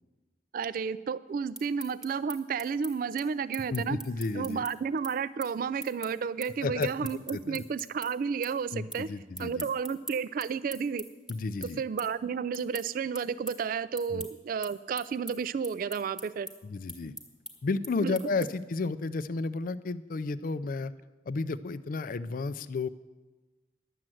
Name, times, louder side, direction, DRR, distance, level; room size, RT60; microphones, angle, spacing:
voice 1, 0.5-4.0 4.3-9.1 9.4-11.0 11.6-16.5 18.0-18.2, right 6 dB, 50° right, 17 dB, 0.3 m, -32 dB
sound 1, 1.3-8.1 8.4-9.0 9.3-18.7, equal, 5° right, 1.1 m, -43 dB
voice 2, 3.7-4.6 6.6-7.6 8.7-9.7 11.3-11.8 14.1-14.2 16.6-17.1 17.6-20.9 21.3-22.9, left 3 dB, 45° left, 15 dB, 0.4 m, -32 dB
11.0 x 7.5 x 7.7 m, 1.2 s
head